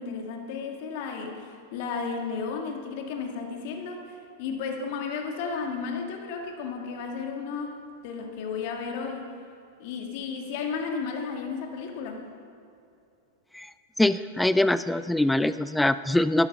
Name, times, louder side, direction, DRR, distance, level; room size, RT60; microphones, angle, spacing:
voice 1, 0.0-7.8 8.0-9.3 9.8-12.2, left 5 dB, 55° left, 3 dB, 1.8 m, -33 dB
voice 2, 14.0-16.5, left 1 dB, 5° left, 14 dB, 0.3 m, -23 dB
12.0 x 11.0 x 5.2 m, 2.6 s
hypercardioid pair, 105°, 0 cm